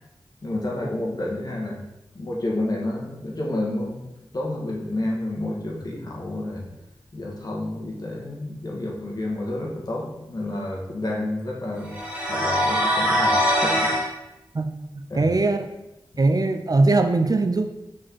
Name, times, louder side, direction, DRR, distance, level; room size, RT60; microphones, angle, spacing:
voice 1, 0.4-1.8 2.1-4.0 4.3-6.7 7.1-11.9 12.2-14.2 15.1-15.3, left 1 dB, 45° left, -2 dB, 1.7 m, -30 dB
sound 1, 11.9-14.1, equal, 15° right, 2.0 m, -22 dB
voice 2, 14.9-15.7 16.2-17.7, right 2 dB, 45° right, 7 dB, 0.5 m, -21 dB
6.3 x 4.4 x 4.6 m, 0.92 s
wide cardioid pair, 85°, 9 cm